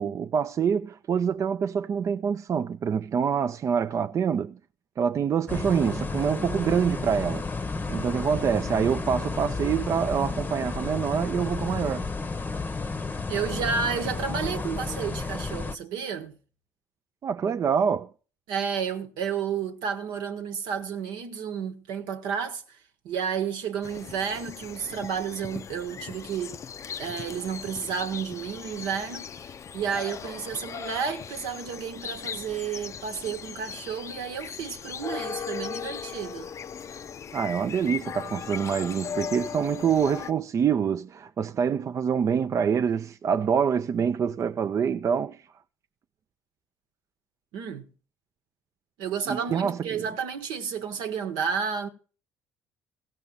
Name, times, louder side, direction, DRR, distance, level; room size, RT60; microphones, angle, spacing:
voice 1, 0.0-4.6 5.0-7.5 7.9-12.0 17.2-18.1 37.3-45.4 49.3-50.0, right 7 dB, 40° right, 0.5 m, -26 dB
sound 1, 5.5-15.8, left 3 dB, 20° left, 0.8 m, -32 dB
voice 2, 13.3-16.4 18.5-22.8 23.0-26.6 27.0-36.5 47.5-47.9 49.0-51.9, right 7 dB, 70° right, 1.2 m, -31 dB
sound 2, 23.8-40.3, left 7 dB, 40° left, 0.5 m, -38 dB
16.0 x 5.4 x 7.2 m
hypercardioid pair, 60°, 8 cm